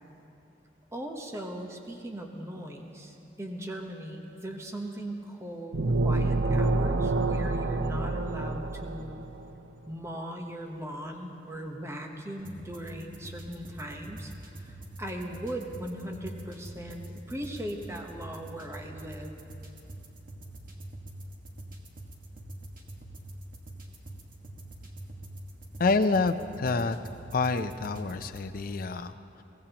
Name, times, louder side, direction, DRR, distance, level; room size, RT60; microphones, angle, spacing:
voice 1, 0.9-9.1 9.9-14.3 14.6-19.4, right 1 dB, 15° right, 3 dB, 1.0 m, -39 dB
sound 1, 5.7-9.4, right 2 dB, 75° right, 0.6 m, -27 dB
sound 2, 12.4-28.5, right 1 dB, 50° right, 1.6 m, -45 dB
voice 2, 25.8-27.0 27.3-29.4, left 3 dB, 50° left, 8 dB, 0.5 m, -27 dB
22.5 x 18.0 x 3.0 m, 2.9 s
head